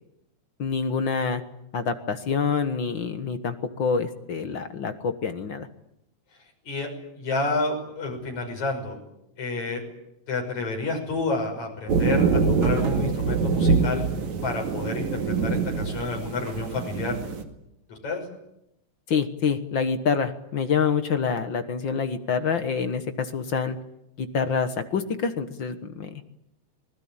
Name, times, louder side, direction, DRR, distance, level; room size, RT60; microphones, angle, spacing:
voice 1, 0.6-1.4 1.7-5.7 19.1-23.8 24.2-26.3, left 6 dB, 50° left, 9 dB, 1.8 m, -26 dB
voice 2, 7.2-9.0 9.4-9.8 10.3-14.0 14.4-15.1 15.4-17.1 17.9-18.2, left 3 dB, 75° left, 2 dB, 7.5 m, -29 dB
sound 1, 11.9-17.4, right 4 dB, 75° right, 3.5 m, -24 dB
26.5 x 20.5 x 8.9 m, 0.84 s
omnidirectional pair, 3.3 m